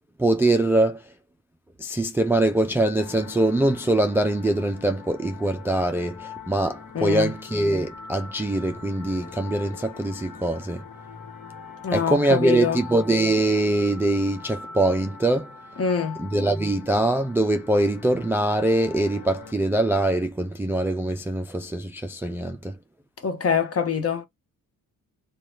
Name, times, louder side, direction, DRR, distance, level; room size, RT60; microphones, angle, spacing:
voice 1, 0.2-1.0 1.8-10.8 11.9-15.5 16.2-22.8, right 1 dB, 5° right, 0.3 m, -23 dB
sound 1, 3.0-19.5, left 5 dB, 65° left, 1.2 m, -42 dB
voice 2, 6.9-7.3 11.8-12.8 15.8-16.2 23.2-24.3, left 6 dB, 45° left, 0.9 m, -24 dB
2.7 x 2.3 x 3.1 m
cardioid pair, 115°, 34 cm